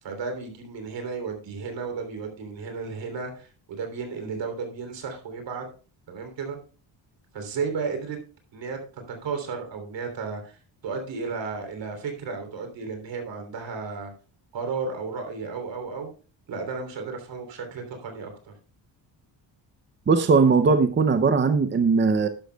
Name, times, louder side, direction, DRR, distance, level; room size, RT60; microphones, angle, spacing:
voice 1, 0.0-5.6 6.1-6.6 7.3-8.2 8.5-14.1 14.5-16.1 16.5-18.5, right 5 dB, 65° right, 5 dB, 3.3 m, -33 dB
voice 2, 20.1-22.3, right 4 dB, 25° right, 9 dB, 0.6 m, -19 dB
11.5 x 11.5 x 2.2 m, 0.37 s
cardioid pair, 165°, 46 cm